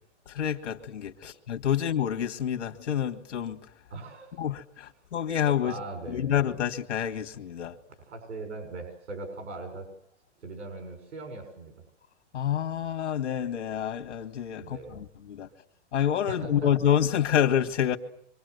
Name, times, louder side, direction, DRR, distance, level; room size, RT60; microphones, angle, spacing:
voice 1, 0.3-3.6 4.4-5.7 6.1-7.8 12.3-15.5 15.9-18.0, left 9 dB, 85° left, 1.8 m, -28 dB
voice 2, 3.9-4.3 5.6-6.4 7.9-9.9 10.4-11.7 14.6-15.0 16.3-16.7, right 3 dB, 80° right, 6.5 m, -40 dB
26.5 x 25.0 x 8.0 m
hypercardioid pair, 170°, 35 cm